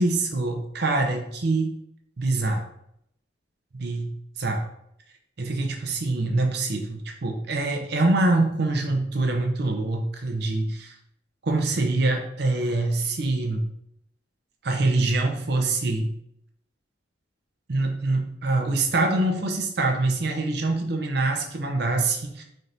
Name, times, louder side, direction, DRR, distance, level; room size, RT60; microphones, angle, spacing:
voice 1, 0.0-1.7 2.2-2.7 3.7-4.6 5.4-10.9 11.4-13.6 14.6-16.1 17.7-22.4, right 2 dB, 60° right, 3 dB, 0.6 m, -25 dB
4.1 x 3.3 x 2.6 m, 0.77 s
head